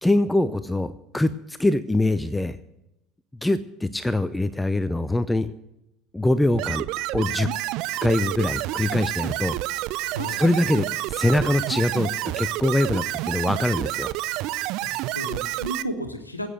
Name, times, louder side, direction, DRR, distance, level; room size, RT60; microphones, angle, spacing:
voice 1, 0.0-2.6 3.4-5.5 6.1-6.8 7.1-7.5 8.0-9.6 10.4-12.1 12.4-14.1, left 1 dB, 5° left, 14 dB, 0.6 m, -23 dB
sound 1, 6.5-15.8, right 17 dB, 55° right, 0.5 m, -29 dB
voice 2, 14.8-16.5, equal, 85° left, 7 dB, 1.4 m, -33 dB
15.5 x 8.8 x 7.8 m, 0.90 s
figure-of-eight pair, 65°, 0 cm